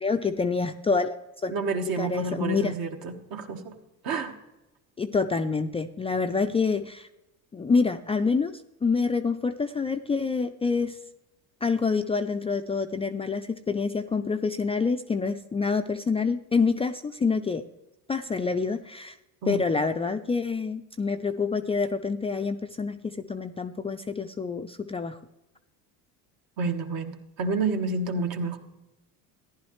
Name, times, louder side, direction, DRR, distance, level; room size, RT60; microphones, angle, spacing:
voice 1, 0.0-1.1 1.4-1.5 2.0-2.7 5.0-7.1 7.5-8.5 8.8-11.0 11.6-17.6 18.1-19.2 19.5-25.2, left 4 dB, 15° left, 6 dB, 0.3 m, -27 dB
voice 2, 1.5-3.8 4.0-4.3 19.4-19.6 26.6-28.6, right 4 dB, 60° right, 4 dB, 1.6 m, -29 dB
14.5 x 10.5 x 3.2 m, 0.97 s
supercardioid pair, 105°, 39 cm